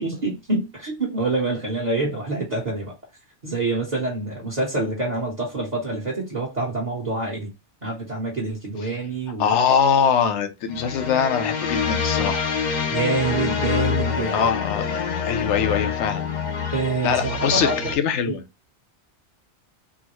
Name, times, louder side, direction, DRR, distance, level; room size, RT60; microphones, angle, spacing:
voice 1, 0.0-2.9 3.4-7.5 7.8-9.5 12.9-14.5 16.7-17.9 18.3-18.4, right 3 dB, 40° right, 1.0 m, -26 dB
voice 2, 9.4-12.5 14.3-14.9 15.2-16.2 17.0-18.4, left 7 dB, 75° left, 0.9 m, -22 dB
sound 1, 10.7-18.0, left 6 dB, 55° left, 0.5 m, -26 dB
3.8 x 2.1 x 2.9 m
omnidirectional pair, 1.2 m